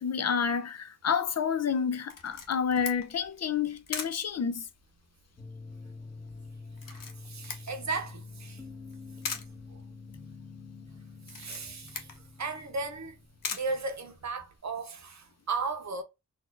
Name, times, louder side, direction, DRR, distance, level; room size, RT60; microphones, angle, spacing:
voice 1, 0.0-4.7, left 7 dB, 50° left, 0.5 m, -29 dB
Camera, 2.1-14.6, left 5 dB, 75° left, 0.8 m, -43 dB
sound 1, 5.4-14.1, left 4 dB, 15° left, 1.1 m, -47 dB
voice 2, 6.9-8.6 9.7-9.8 11.3-12.1 12.4-13.2 13.5-16.0, right 3 dB, 55° right, 0.7 m, -36 dB
4.1 x 2.4 x 2.4 m
wide cardioid pair, 85°, 33 cm